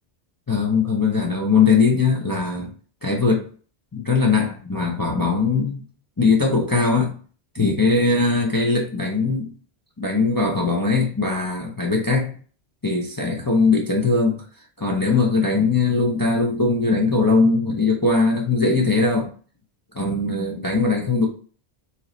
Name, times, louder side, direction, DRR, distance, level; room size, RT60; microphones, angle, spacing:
voice 1, 0.5-2.7 3.0-3.4 3.9-5.8 6.2-7.2 7.5-9.5 10.0-12.3 12.8-14.4 14.8-19.3 19.9-21.3, left 4 dB, 25° left, 0.5 m, -20 dB
3.0 x 2.9 x 3.8 m
omnidirectional pair, 1.1 m